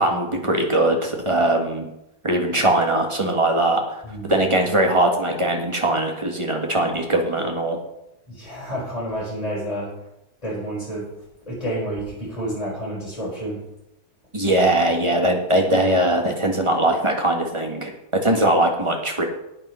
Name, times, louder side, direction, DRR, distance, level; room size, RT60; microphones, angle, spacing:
voice 1, 0.0-1.9 2.2-4.0 4.3-7.8 14.3-17.9 18.2-19.3, right 1 dB, 20° right, 2 dB, 1.7 m, -20 dB
voice 2, 4.0-4.7 8.3-9.9 10.4-11.1 11.5-13.7, right 1 dB, 25° left, -6 dB, 4.7 m, -30 dB
9.5 x 8.8 x 5.7 m, 0.85 s
omnidirectional pair, 1.5 m